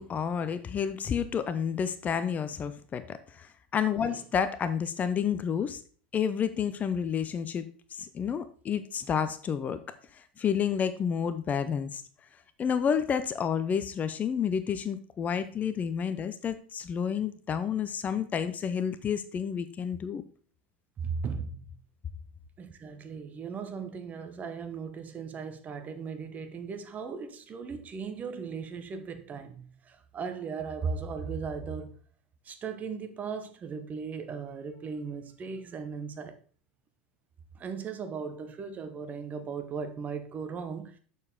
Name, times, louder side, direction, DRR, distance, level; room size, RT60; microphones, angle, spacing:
voice 1, 0.0-5.8 6.1-9.8 10.1-12.0 12.6-20.2, left 7 dB, 30° left, 0.6 m, -30 dB
voice 2, 21.0-21.6 22.6-32.0 32.4-36.4 37.5-41.0, right 5 dB, 30° right, 1.1 m, -37 dB
6.8 x 6.6 x 3.6 m
hypercardioid pair, 85°, 5 cm